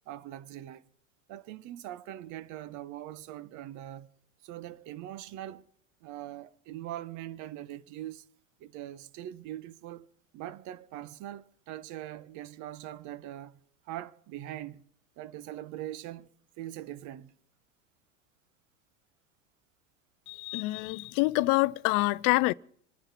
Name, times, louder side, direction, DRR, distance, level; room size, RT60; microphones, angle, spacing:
voice 1, 0.1-0.8 1.3-4.1 4.4-5.6 6.0-8.3 8.6-10.1 10.3-13.6 13.8-14.8 15.2-16.3 16.6-17.3, right 13 dB, 50° right, 1.0 m, -42 dB
voice 2, 20.3-22.5, left 22 dB, 55° left, 0.6 m, -26 dB
28.0 x 9.9 x 4.2 m
hypercardioid pair, 100°, 39 cm